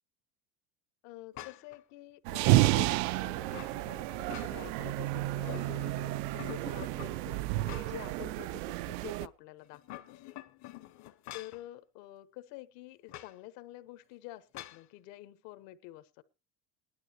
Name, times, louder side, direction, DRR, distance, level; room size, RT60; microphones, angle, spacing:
voice 1, 1.0-10.4 11.3-16.2, left 16 dB, 75° left, 14 dB, 1.1 m, -48 dB
sound 1, 1.3-1.8 2.3-3.8 4.2-4.9 5.2-6.0 6.4-8.1 8.5-8.6 9.6-11.6 13.1-13.3 14.5-14.8, left 15 dB, 40° left, 0.6 m, -48 dB
sound 2, 2.2-9.3, right 16 dB, 90° right, 0.5 m, -31 dB
18.5 x 11.5 x 2.9 m, 0.28 s
cardioid pair, 160°, 44 cm